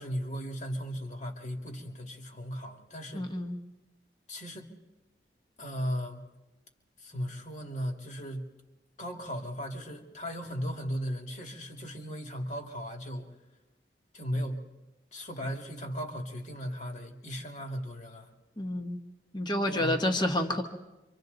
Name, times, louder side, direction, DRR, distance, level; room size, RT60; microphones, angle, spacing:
voice 1, 0.0-3.4 4.3-4.7 5.6-6.3 7.0-8.5 9.0-13.3 14.1-14.6 15.1-18.3 19.7-20.0, equal, 45° left, 2 dB, 2.5 m, -36 dB
voice 2, 3.1-3.6 18.6-19.0 19.3-20.6, left 1 dB, 25° left, 4 dB, 1.4 m, -29 dB
28.0 x 25.5 x 4.0 m, 1.0 s
head